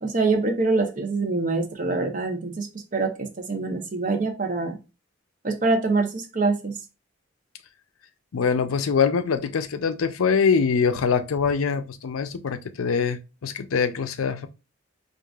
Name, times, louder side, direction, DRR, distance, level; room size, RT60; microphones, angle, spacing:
voice 1, 0.0-2.7 2.9-4.8 5.4-6.7, right 3 dB, 40° right, 0.7 m, -25 dB
voice 2, 8.3-14.5, left 6 dB, 85° left, 0.5 m, -23 dB
4.7 x 2.5 x 2.3 m
head